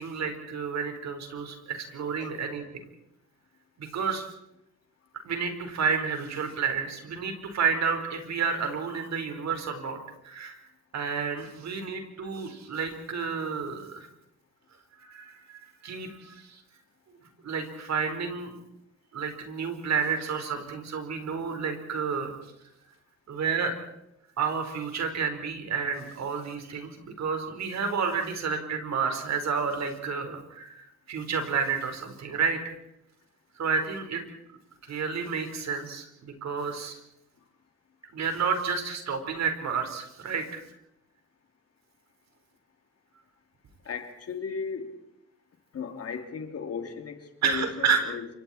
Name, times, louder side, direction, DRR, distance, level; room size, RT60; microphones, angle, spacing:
voice 1, 0.0-2.6 3.8-4.2 5.2-10.6 10.9-14.1 15.0-16.6 17.4-18.6 19.1-22.3 23.3-23.8 24.4-32.7 33.6-34.2 34.9-37.0 38.1-40.6 47.4-48.0, right 6 dB, 60° right, 5 dB, 4.6 m, -30 dB
voice 2, 43.8-45.0 45.7-48.3, left 5 dB, 50° left, 5 dB, 3.2 m, -36 dB
28.5 x 25.0 x 4.4 m, 0.82 s
cardioid pair, 90°, 30 cm